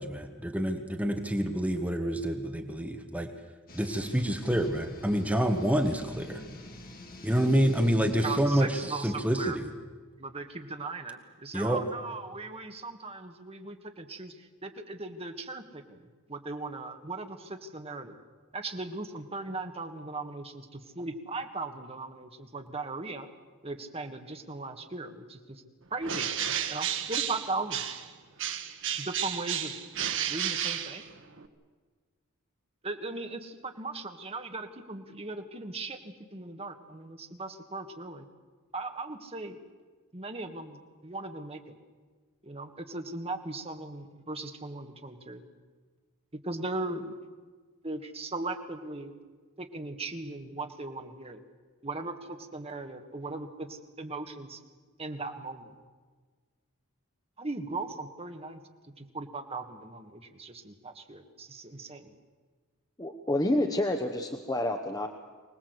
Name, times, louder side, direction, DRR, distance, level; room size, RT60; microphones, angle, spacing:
voice 1, 0.0-3.3 3.7-6.5 7.2-9.7 11.5-11.8, equal, 5° right, 4 dB, 1.3 m, -27 dB
sound 1, 3.7-8.9, left 2 dB, 40° left, 2.5 m, -48 dB
voice 2, 8.2-9.6 10.2-18.1 18.5-23.3 23.6-25.6 25.9-26.3 26.7-27.8 29.0-29.7 30.3-31.1 32.8-38.2 38.7-39.6 40.1-41.7 42.4-45.4 46.4-47.2 47.8-49.1 49.6-51.4 51.8-54.6 55.0-55.7 57.4-58.6 59.0-62.1, right 3 dB, 25° right, 5 dB, 1.7 m, -38 dB
Bird, 26.0-28.1 28.4-31.5, right 9 dB, 60° right, 1.5 m, -32 dB
voice 3, 63.0-65.1, left 1 dB, 15° left, 5 dB, 1.0 m, -28 dB
24.5 x 19.0 x 8.0 m, 1.5 s
head